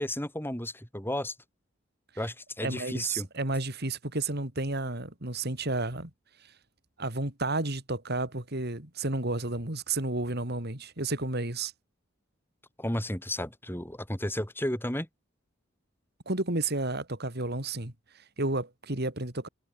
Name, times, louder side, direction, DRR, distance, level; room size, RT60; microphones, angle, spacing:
voice 1, 0.0-1.3 2.2-3.3 12.8-15.1, left 1 dB, 10° left, 7.7 m, -33 dB
voice 2, 2.6-6.1 6.4-6.5 7.0-11.7 16.3-19.5, right 2 dB, 55° right, 3.5 m, -32 dB
head